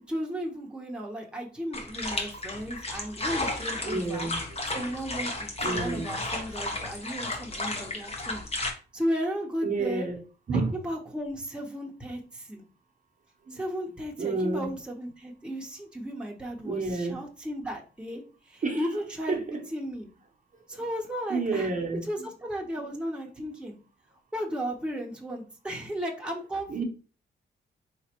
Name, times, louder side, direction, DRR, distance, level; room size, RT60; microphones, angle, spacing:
voice 1, 0.0-4.3 4.7-8.4 8.9-10.0 10.5-12.6 13.5-18.2 18.5-19.4 19.7-20.1 20.7-21.7 22.1-23.8 24.3-26.8, equal, 5° right, 1.0 m, -35 dB
sound 1, 1.7-8.7, left 2 dB, 30° left, 1.0 m, -33 dB
voice 2, 3.8-4.6 5.6-6.1 9.6-10.2 10.5-10.7 13.5-13.6 14.2-14.7 16.6-17.2 18.6-19.0 19.3-19.7 20.7-20.8 21.3-22.1 22.8-22.9 23.4-23.5 26.7-26.8, right 3 dB, 40° right, 0.9 m, -30 dB
3.9 x 3.2 x 2.9 m
cardioid pair, 80°, 20 cm